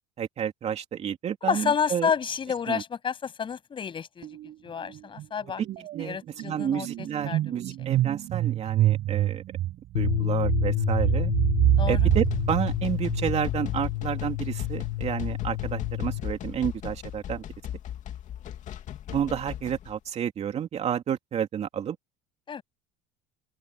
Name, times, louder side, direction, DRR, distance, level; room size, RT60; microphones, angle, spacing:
voice 1, 0.2-2.1 2.7-2.8 5.9-9.4 9.9-11.3 11.9-17.4 19.1-22.0, right 9 dB, 35° right, 2.7 m, -30 dB
voice 2, 1.4-4.3 4.6-5.6 6.0-7.4 7.8-7.9 11.8-12.1 22.5-22.6, left 7 dB, 25° left, 8.0 m, -30 dB
sound 1, 4.2-4.5 4.8-13.6, right 14 dB, 50° right, 6.2 m, -27 dB
sound 2, 9.9-16.2, left 17 dB, 80° left, 1.8 m, -29 dB
sound 3, 11.7-19.9, left 10 dB, 45° left, 2.6 m, -37 dB
open air
cardioid pair, 130°, 18 cm